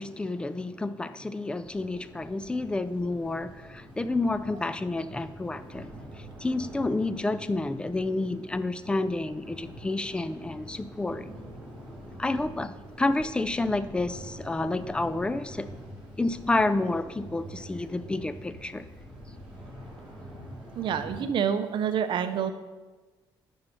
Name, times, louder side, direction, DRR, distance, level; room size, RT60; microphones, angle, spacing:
voice 1, 0.0-5.9 6.2-11.3 12.2-15.7 16.2-18.9, left 2 dB, 10° left, 13 dB, 0.3 m, -29 dB
sound 1, 1.6-21.2, right 1 dB, 5° right, 2.5 m, -45 dB
voice 2, 20.8-22.5, right 8 dB, 60° right, 10 dB, 0.6 m, -27 dB
7.0 x 5.6 x 5.5 m, 1.3 s
cardioid pair, 125°, 9 cm